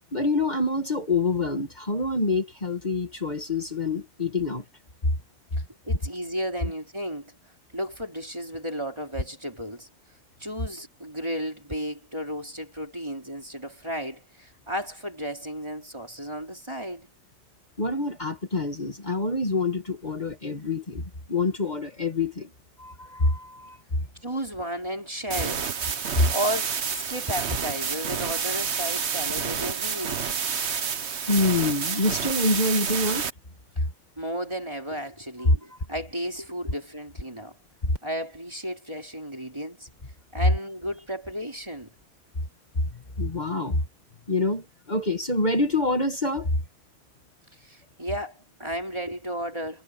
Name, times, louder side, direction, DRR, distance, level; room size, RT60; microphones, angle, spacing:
voice 1, 0.1-4.6 17.8-22.5 22.8-24.0 26.2-26.3 31.3-33.3 35.4-35.6 37.8-38.0 42.9-43.9 44.3-46.6, left 2 dB, 40° left, 2.0 m, -26 dB
voice 2, 5.8-7.3 7.7-9.9 10.4-17.1 24.2-25.7 26.3-30.2 34.2-37.6 38.0-39.9 40.3-41.9 47.5-49.8, equal, 25° right, 3.7 m, -33 dB
sound 1, 25.3-33.3, right 6 dB, 70° right, 1.4 m, -29 dB
omnidirectional pair, 1.2 m